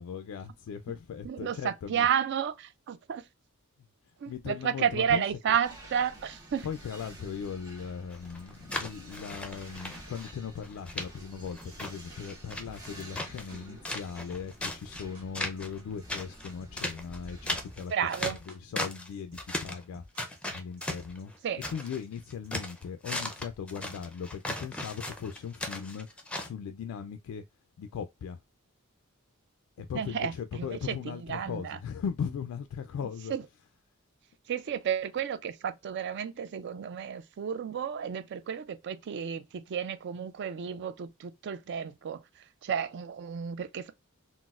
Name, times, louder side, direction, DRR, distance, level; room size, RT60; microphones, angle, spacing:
voice 1, 0.0-2.1 4.3-5.6 6.6-20.0 20.5-21.3 21.7-27.4 27.8-28.4 29.8-33.7, left 7 dB, 80° left, 0.3 m, -39 dB
voice 2, 1.2-3.2 4.2-6.7 17.9-18.4 21.4-21.6 29.9-31.8 33.3-33.4 34.5-42.2 42.6-43.9, right 8 dB, 55° right, 0.4 m, -32 dB
sound 1, 5.6-17.8, right 1 dB, 20° right, 1.0 m, -50 dB
sound 2, 8.1-10.3 10.6-11.1 11.5-13.6 13.8-15.0 15.3-15.8 16.1-19.1 19.3-19.8 20.2-22.0 22.3-26.5, left 1 dB, 5° left, 0.5 m, -37 dB
sound 3, 9.3-22.5, equal, 85° right, 1.2 m, -54 dB
3.9 x 2.0 x 2.3 m
head